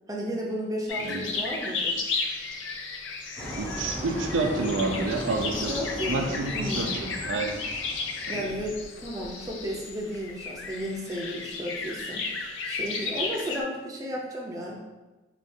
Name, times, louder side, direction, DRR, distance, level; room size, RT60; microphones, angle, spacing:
voice 1, 0.1-2.0 5.5-6.9 8.3-12.3 12.6-14.8, equal, 20° right, -2 dB, 0.5 m, -33 dB
sound 1, 0.9-13.6, left 4 dB, 85° left, 0.4 m, -34 dB
sound 2, 3.4-8.5, equal, 10° left, 0.8 m, -38 dB
voice 2, 3.6-5.7 6.1-7.6 8.3-8.5, right 3 dB, 90° right, 3 dB, 0.4 m, -29 dB
4.5 x 2.4 x 2.6 m, 1.1 s
head